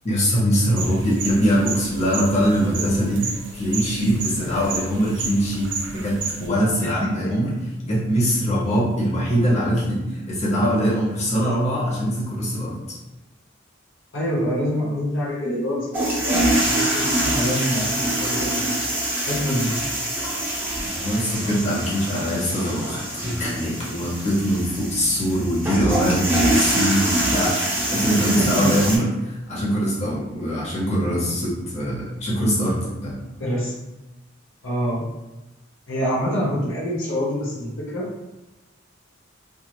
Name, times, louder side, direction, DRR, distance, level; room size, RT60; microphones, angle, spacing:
voice 1, 0.0-3.2 3.5-7.5 7.8-12.8 20.8-33.2, equal, 35° left, -7 dB, 0.9 m, -22 dB
sound 1, 0.8-6.5, right 4 dB, 60° right, 0.5 m, -32 dB
voice 2, 14.1-17.9 18.2-18.7 19.2-19.7 28.2-28.7 33.4-33.7 34.6-35.0 35.9-38.1, equal, 80° left, -5 dB, 0.7 m, -26 dB
sound 2, 15.9-29.0, right 1 dB, 10° right, 0.6 m, -24 dB
2.4 x 2.4 x 2.9 m, 1.0 s
head